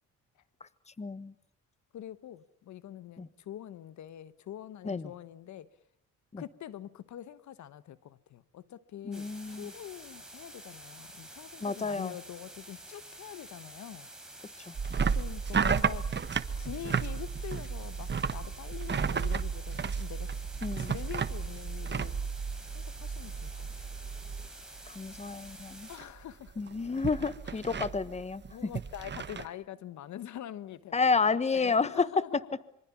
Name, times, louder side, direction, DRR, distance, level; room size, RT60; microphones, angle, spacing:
voice 1, 1.0-1.3 3.2-3.3 4.8-5.1 6.3-6.4 9.0-9.7 11.6-12.1 14.6-14.7 20.6-20.9 24.9-25.9 26.6-28.7 30.9-32.1, left 4 dB, 20° left, 1.3 m, -30 dB
voice 2, 1.9-5.7 6.4-14.1 15.1-16.1 16.6-20.3 20.8-22.2 22.7-23.7 25.9-26.7 27.5-27.8 28.5-32.4, left 11 dB, 70° left, 1.2 m, -45 dB
sound 1, 9.1-26.0, right 1 dB, ahead, 6.4 m, -49 dB
sound 2, 14.7-24.9 25.1-25.6 25.9-29.5, right 6 dB, 35° right, 1.3 m, -33 dB
26.5 x 24.5 x 7.2 m
cardioid pair, 90°, 30 cm